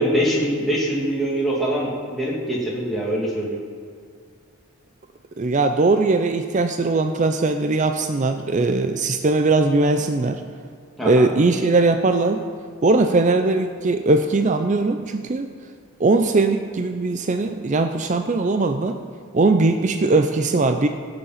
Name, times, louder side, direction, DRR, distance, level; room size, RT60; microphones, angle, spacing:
voice 1, 0.0-3.6 11.0-11.3, equal, ahead, -6 dB, 1.8 m, -23 dB
voice 2, 5.4-10.4 11.0-12.4 12.8-15.5 16.0-19.0 19.3-20.9, right 3 dB, 35° right, 7 dB, 0.5 m, -20 dB
16.0 x 6.9 x 5.7 m, 2.1 s
head